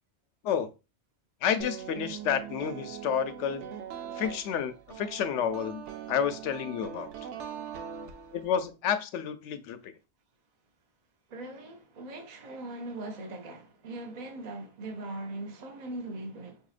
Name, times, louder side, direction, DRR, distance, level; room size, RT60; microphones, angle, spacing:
voice 1, 1.4-3.7 4.1-7.3 8.3-9.9, left 8 dB, 80° left, 0.9 m, -30 dB
sound 1, 1.6-8.7, right 8 dB, 80° right, 0.9 m, -41 dB
voice 2, 11.3-16.6, right 2 dB, 45° right, 0.7 m, -40 dB
5.5 x 2.8 x 2.4 m
omnidirectional pair, 1.2 m